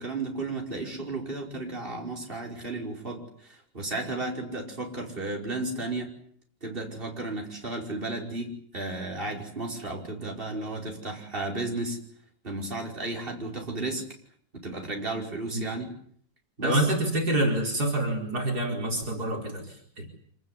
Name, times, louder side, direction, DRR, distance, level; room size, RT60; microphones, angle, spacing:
voice 1, 0.0-6.1 6.6-12.0 12.4-14.1 14.6-15.9 16.6-16.9, right 2 dB, 30° right, 0 dB, 5.6 m, -33 dB
voice 2, 16.6-20.1, right 1 dB, 55° right, 1 dB, 5.1 m, -27 dB
27.0 x 20.0 x 9.7 m, 0.62 s
omnidirectional pair, 2.0 m